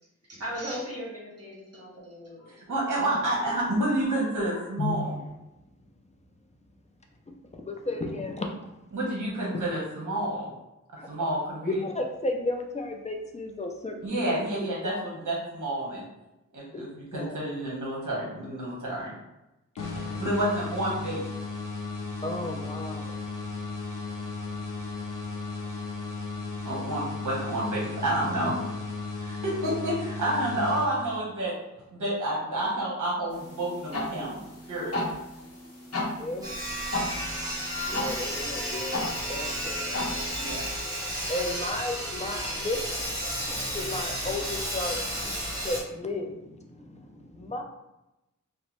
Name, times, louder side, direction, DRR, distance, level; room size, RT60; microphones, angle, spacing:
voice 1, 0.3-2.5 4.0-4.8, equal, 50° right, -6 dB, 1.4 m, -38 dB
voice 2, 2.7-5.2 8.9-10.5 11.1-11.8 14.0-16.1 16.5-19.1 20.2-21.2 26.6-28.5 29.2-31.5 31.9-34.4 34.7-35.1 40.3-40.6, right 1 dB, 75° right, -5 dB, 0.9 m, -29 dB
voice 3, 7.5-8.5 11.0-11.3 11.7-14.3 16.7-16.8 17.1-17.4 22.2-23.2 36.2-36.5 37.9-39.0 39.3-39.8 41.1-47.6, left 2 dB, 25° left, 2 dB, 0.4 m, -34 dB
sound 1, 19.8-31.5, left 3 dB, 85° left, 0.6 m, -35 dB
sound 2, 33.3-40.6, left 2 dB, 50° left, 0.9 m, -35 dB
Sawing, 36.4-45.8, equal, 10° right, 0.8 m, -32 dB
2.9 x 2.1 x 3.0 m, 0.93 s
wide cardioid pair, 90°, 31 cm